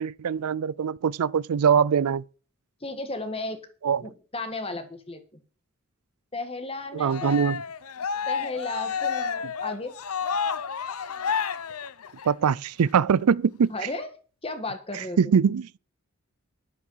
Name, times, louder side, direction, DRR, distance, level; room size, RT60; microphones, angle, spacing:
voice 1, 0.0-2.2 3.8-4.0 6.9-7.6 12.2-13.7 15.2-15.7, right 7 dB, 85° right, 0.4 m, -22 dB
voice 2, 2.8-3.6 4.0-5.2 6.3-7.4 8.3-9.9 13.7-14.1 14.4-15.2, left 2 dB, 25° left, 1.6 m, -34 dB
Cheering, 7.0-12.5, left 6 dB, 80° left, 0.7 m, -30 dB
11.5 x 8.2 x 5.7 m
head